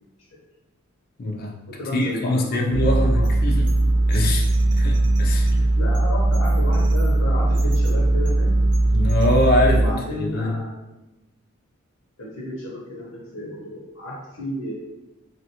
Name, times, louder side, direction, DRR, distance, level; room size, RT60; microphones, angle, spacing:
voice 1, 1.2-1.5 1.9-3.7 4.1-4.4 4.7-5.7 8.9-9.9 10.2-10.5, left 1 dB, 45° left, 0 dB, 0.5 m, -23 dB
voice 2, 1.8-3.5 5.7-8.5 9.7-10.8 12.2-14.7, left 1 dB, 75° left, -6 dB, 0.8 m, -32 dB
sound 1, 2.7-9.9, right 2 dB, 60° right, 0.4 m, -19 dB
3.2 x 2.4 x 2.8 m, 1.0 s
head